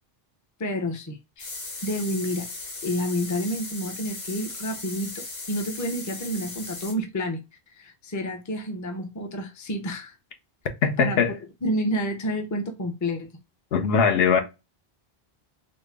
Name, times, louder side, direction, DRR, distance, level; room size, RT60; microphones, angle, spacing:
voice 1, 0.6-1.5 1.8-2.5 2.8-7.4 7.7-10.1 11.0-11.2 11.6-13.3, equal, 25° left, 0.5 m, -29 dB
sound 1, 1.4-6.9, left 3 dB, 45° left, 1.0 m, -37 dB
voice 2, 10.8-11.3 13.7-14.4, left 6 dB, 75° left, 0.9 m, -20 dB
4.2 x 2.0 x 3.3 m
omnidirectional pair, 1.0 m